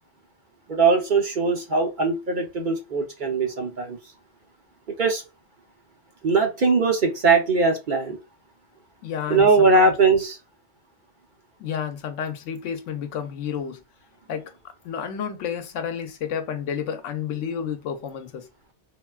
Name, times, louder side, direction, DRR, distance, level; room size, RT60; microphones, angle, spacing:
voice 1, 0.7-4.0 5.0-5.2 6.2-8.2 9.3-10.4, right 4 dB, 50° right, 0.8 m, -20 dB
voice 2, 9.0-9.9 11.6-13.8 14.3-14.4 14.8-18.5, left 8 dB, 90° left, 1.0 m, -31 dB
3.7 x 2.2 x 2.3 m
omnidirectional pair, 1.2 m